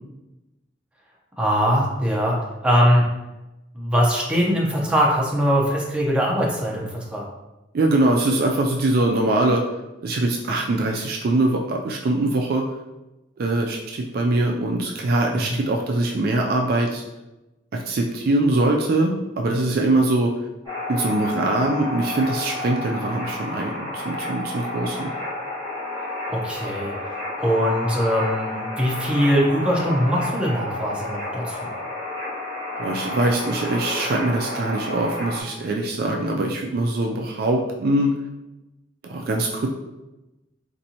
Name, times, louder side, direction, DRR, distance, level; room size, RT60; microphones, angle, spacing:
voice 1, 1.4-2.4 2.6-3.1 3.7-7.2 15.4-15.6 26.3-31.7, equal, 5° right, -3 dB, 0.6 m, -21 dB
voice 2, 7.7-9.6 10.0-12.6 13.4-17.0 17.7-20.3 20.9-25.1 32.8-38.1 39.0-39.7, right 2 dB, 50° right, 1 dB, 0.4 m, -22 dB
sound 1, 20.6-35.4, left 1 dB, 20° left, 1.4 m, -31 dB
4.2 x 2.6 x 2.8 m, 1.0 s
head